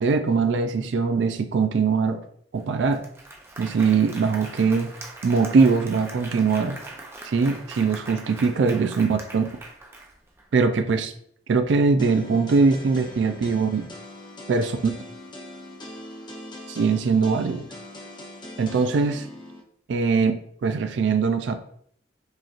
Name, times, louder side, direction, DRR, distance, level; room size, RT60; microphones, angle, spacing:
voice 1, 0.0-2.2 2.5-3.0 3.6-4.9 5.2-6.8 7.2-9.4 10.5-11.1 11.5-13.8 14.5-14.8 16.7-17.7 18.6-19.3 19.9-20.3 20.6-21.5, right 4 dB, 80° right, 7 dB, 0.4 m, -21 dB
Applause, 2.5-2.6 2.9-10.4, right 2 dB, 15° right, 0.6 m, -41 dB
sound 1, 12.0-19.6, left 1 dB, 25° left, 0.7 m, -41 dB
4.8 x 2.9 x 2.4 m, 0.66 s
head